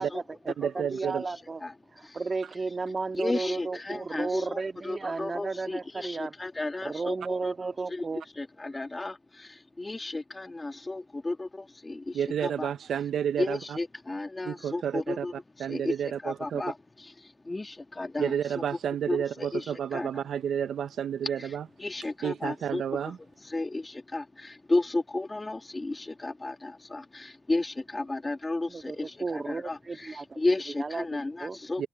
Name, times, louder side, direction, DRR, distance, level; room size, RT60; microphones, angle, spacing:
voice 1, 0.0-1.6 1.9-6.3 6.8-8.2 28.6-31.1 31.4-31.6, right 4 dB, 30° right, 2.1 m, -34 dB
voice 2, 0.6-1.2 12.1-13.8 14.4-15.3 15.6-16.6 18.2-21.7 22.2-23.2 31.8-31.9, right 8 dB, 60° right, 0.6 m, -30 dB
voice 3, 3.1-7.2 7.4-7.5 7.9-8.0 8.4-12.7 13.4-15.3 15.7-16.7 17.2-18.3 19.1-20.1 21.4-21.5 21.8-22.8 23.5-31.8, left 2 dB, 20° left, 1.7 m, -33 dB
open air
cardioid pair, 90°, 0 cm